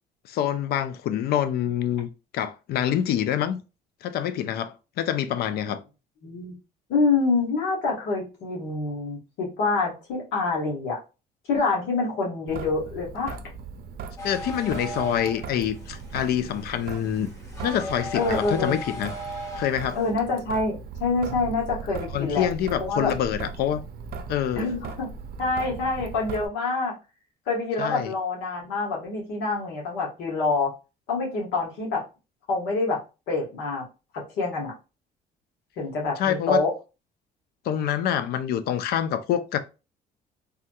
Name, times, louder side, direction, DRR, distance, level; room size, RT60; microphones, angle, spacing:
voice 1, 0.3-2.1 2.3-3.6 4.0-5.8 14.2-17.3 17.6-19.1 19.6-20.0 22.1-23.8 24.3-24.7 27.8-28.1 36.2-36.6 37.6-39.6, left 10 dB, 70° left, 0.4 m, -26 dB
voice 2, 6.2-6.5 6.9-11.0 11.5-13.3 18.1-18.7 19.9-20.7 21.0-22.5 22.8-23.1 24.5-25.1 25.4-26.9 27.5-30.7 31.1-32.0 32.5-33.0 33.3-33.8 34.4-34.7 35.8-36.7, left 3 dB, 90° left, 1.4 m, -26 dB
Traffic noise roadway noise / Drip / Trickle dribble, 12.5-26.5, right 5 dB, 60° right, 0.5 m, -38 dB
sound 1, 14.2-20.1, left 1 dB, 20° left, 1.1 m, -38 dB
3.5 x 2.7 x 2.2 m
cardioid pair, 110°, 17 cm